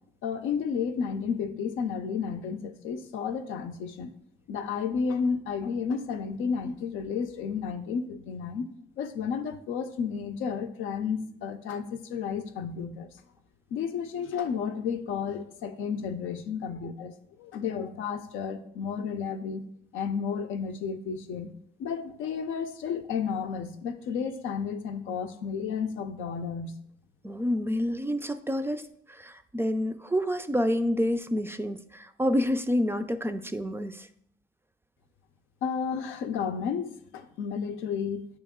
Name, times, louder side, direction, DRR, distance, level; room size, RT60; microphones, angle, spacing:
voice 1, 0.2-4.1 4.5-8.7 9.0-13.1 13.7-19.6 19.9-21.5 21.8-26.8 35.6-38.3, left 6 dB, 85° left, 7 dB, 0.6 m, -32 dB
voice 2, 27.2-34.1, equal, 10° right, 10 dB, 0.3 m, -28 dB
9.1 x 3.1 x 3.6 m, 0.71 s
cardioid pair, 90°, 20 cm